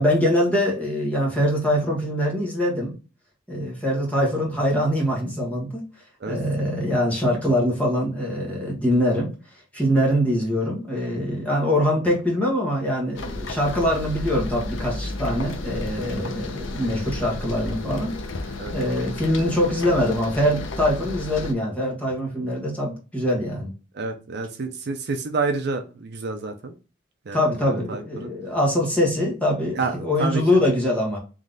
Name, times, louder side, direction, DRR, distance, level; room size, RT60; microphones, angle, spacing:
voice 1, 0.0-2.9 3.5-5.8 6.3-9.3 9.7-23.7 27.3-31.2, left 1 dB, 5° left, 1.4 m, -23 dB
sound 1, 13.2-21.5, left 2 dB, 65° left, 0.7 m, -32 dB
voice 2, 23.9-26.7 27.3-28.3 29.7-30.4, right 4 dB, 55° right, 0.5 m, -29 dB
3.7 x 3.2 x 3.7 m
head